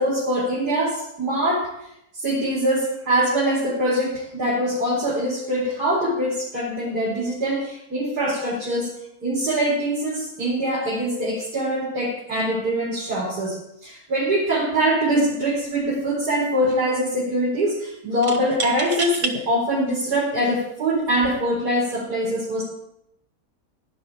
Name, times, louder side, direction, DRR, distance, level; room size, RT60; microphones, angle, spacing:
voice 1, 0.0-1.7 2.1-22.6, right 1 dB, 80° right, -6 dB, 5.3 m, -23 dB
sound 1, 15.1-15.3 15.6-16.3 18.2-19.4 20.1-20.2 21.1-21.4, right 3 dB, 50° right, 1.8 m, -30 dB
18.0 x 11.0 x 5.0 m, 0.78 s
omnidirectional pair, 1.7 m